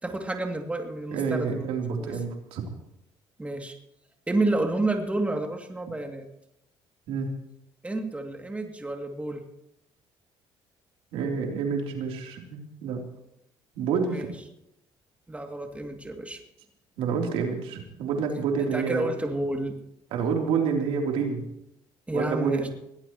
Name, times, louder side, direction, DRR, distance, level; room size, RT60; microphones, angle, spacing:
voice 1, 0.0-1.6 2.0-2.2 3.4-3.8 4.3-6.3 7.8-9.4 14.1-14.3 15.3-16.4 18.7-19.8 22.1-22.7, right 2 dB, 15° right, 3 dB, 2.6 m, -30 dB
voice 2, 1.1-2.7 7.1-7.3 11.1-13.0 13.7-14.3 17.0-19.1 20.1-21.5 22.1-22.7, right 6 dB, 80° right, 1 dB, 3.4 m, -28 dB
22.0 x 18.0 x 3.1 m, 0.81 s
cardioid pair, 90°, 10 cm